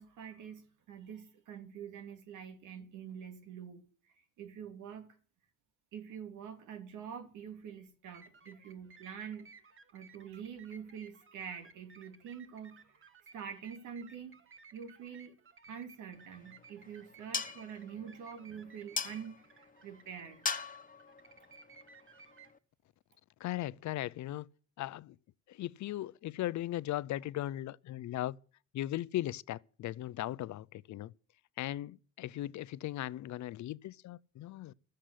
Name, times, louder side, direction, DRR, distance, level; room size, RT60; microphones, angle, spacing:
voice 1, 0.0-3.8 4.2-5.2 5.9-9.5 9.9-14.4 14.7-15.3 15.7-20.4, right 7 dB, 85° right, 2.8 m, -46 dB
computer sounds, 8.1-22.5, right 5 dB, 40° right, 1.7 m, -59 dB
sound 1, 16.2-22.6, left 5 dB, 25° left, 1.3 m, -42 dB
voice 2, 23.4-24.5 24.8-25.2 25.5-28.4 28.7-31.1 31.6-34.7, left 14 dB, 70° left, 0.6 m, -38 dB
13.0 x 7.7 x 10.0 m
cardioid pair, 90°, 30 cm